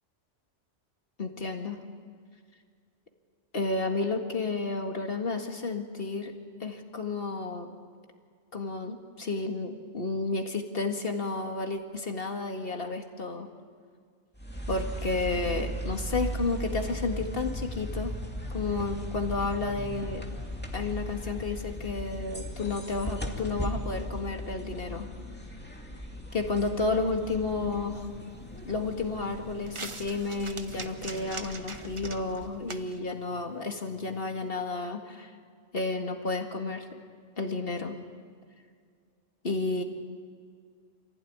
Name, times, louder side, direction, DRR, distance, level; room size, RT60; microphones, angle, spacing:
voice 1, 1.2-1.8 3.5-6.3 6.6-7.7 8.5-13.5 14.7-18.1 18.5-20.2 20.7-25.1 26.3-28.1 28.7-35.3 35.7-36.9 37.4-38.0 39.4-39.8, left 3 dB, 50° left, 4 dB, 2.2 m, -31 dB
sound 1, 14.3-32.8, equal, 10° left, 2.4 m, -38 dB
sound 2, 27.6-34.5, right 3 dB, 25° right, 1.0 m, -45 dB
26.5 x 16.0 x 9.5 m, 2.1 s
omnidirectional pair, 1.3 m